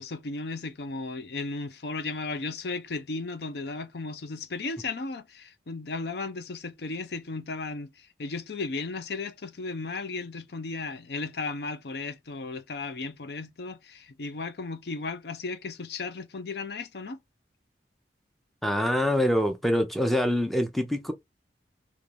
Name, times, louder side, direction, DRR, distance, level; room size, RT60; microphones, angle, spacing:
voice 1, 0.0-17.2, left 3 dB, 65° left, 0.5 m, -35 dB
voice 2, 18.6-21.1, equal, ahead, 0.6 m, -25 dB
3.7 x 3.0 x 3.5 m
head